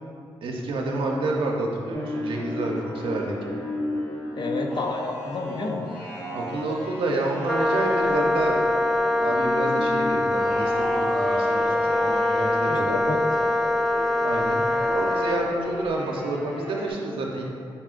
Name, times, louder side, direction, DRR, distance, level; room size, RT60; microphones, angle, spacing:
voice 1, 0.4-3.4 6.3-8.7 9.2-13.0 14.2-17.5, right 2 dB, 85° right, 0 dB, 0.6 m, -29 dB
sound 1, 1.9-16.9, left 1 dB, 85° left, 1.1 m, -34 dB
voice 2, 4.3-5.9 11.5-11.9 12.7-13.2, left 3 dB, 55° left, 3 dB, 0.5 m, -30 dB
Wind instrument woodwind instrument, 7.5-15.5, left 1 dB, ahead, 0.3 m, -23 dB
5.5 x 2.4 x 3.7 m, 2.3 s
cardioid pair, 55°, 9 cm